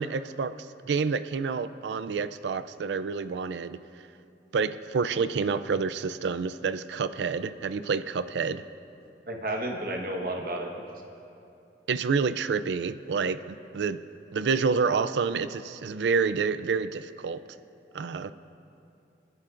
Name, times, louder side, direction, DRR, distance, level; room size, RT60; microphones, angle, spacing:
voice 1, 0.0-3.8 4.5-8.6 11.9-14.0 14.3-17.4 17.9-18.3, right 5 dB, 85° right, 12 dB, 0.4 m, -28 dB
voice 2, 9.2-10.8, right 1 dB, 55° right, 2 dB, 1.3 m, -32 dB
28.5 x 11.0 x 2.5 m, 2.7 s
head